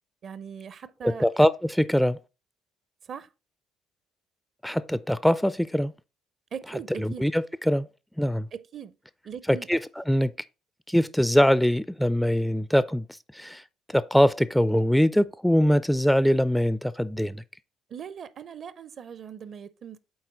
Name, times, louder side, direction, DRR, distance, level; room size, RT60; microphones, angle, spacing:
voice 1, 0.2-1.3 3.1-3.3 6.5-7.3 8.5-8.9 9.2-9.7 17.9-20.0, right 7 dB, 50° right, 0.5 m, -40 dB
voice 2, 1.0-2.2 4.6-5.9 7.0-7.9 8.2-8.5 9.5-10.3 10.9-13.1 13.3-13.6 13.9-17.4, equal, 5° left, 0.4 m, -23 dB
7.9 x 4.2 x 3.8 m
hypercardioid pair, 50°, 0 cm